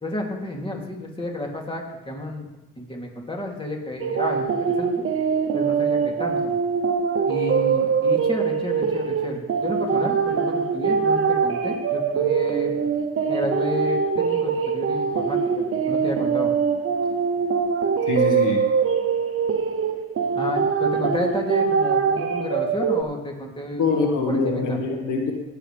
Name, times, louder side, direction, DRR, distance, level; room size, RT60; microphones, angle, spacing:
voice 1, 0.0-2.5 2.8-4.9 5.5-6.5 7.3-12.7 13.3-16.5 20.3-24.8, left 1 dB, 15° left, 0 dB, 2.7 m, -31 dB
sound 1, 4.0-23.0, right 6 dB, 45° right, 0.8 m, -23 dB
voice 2, 18.1-18.6 23.8-25.3, left 3 dB, 80° left, 1 dB, 1.9 m, -23 dB
18.0 x 8.0 x 3.4 m, 1.0 s
cardioid pair, 90°, 30 cm